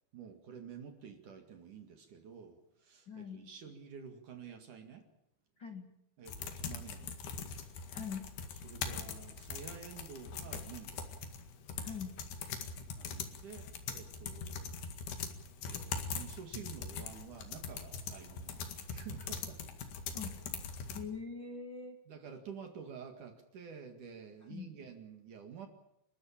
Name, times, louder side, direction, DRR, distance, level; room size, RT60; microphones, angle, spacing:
voice 1, 0.1-5.0 6.2-7.2 8.6-11.1 12.9-14.9 15.7-19.6 20.6-20.9 22.1-25.7, right 7 dB, 50° right, 6 dB, 2.8 m, -50 dB
voice 2, 3.1-3.4 5.6-5.8 7.9-8.2 11.8-12.1 20.1-20.3 20.9-22.0 24.5-24.7, left 6 dB, 75° left, 4 dB, 1.0 m, -42 dB
sound 1, 6.3-21.0, left 5 dB, 60° left, 3.6 m, -42 dB
29.5 x 13.0 x 8.8 m, 0.81 s
omnidirectional pair, 5.7 m